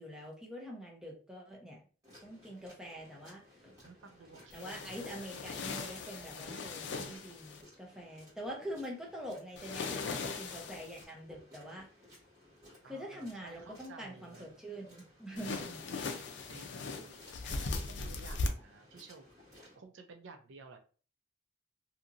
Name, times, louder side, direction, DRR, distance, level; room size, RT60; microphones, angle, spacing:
voice 1, 0.0-1.8 2.2-3.8 4.5-11.9 12.8-15.8 17.4-17.5, equal, 5° right, -2 dB, 0.7 m, -45 dB
sound 1, 2.0-19.8, left 1 dB, 20° right, 1.5 m, -59 dB
voice 2, 3.8-5.3 12.8-14.5 15.3-15.6 16.5-17.2 17.5-19.3 19.8-20.8, right 4 dB, 75° right, 6 dB, 0.4 m, -54 dB
sound 2, 4.5-7.6 9.6-11.0 15.4-18.5, left 3 dB, 65° left, 0.4 m, -39 dB
2.8 x 2.6 x 2.5 m, 0.38 s
head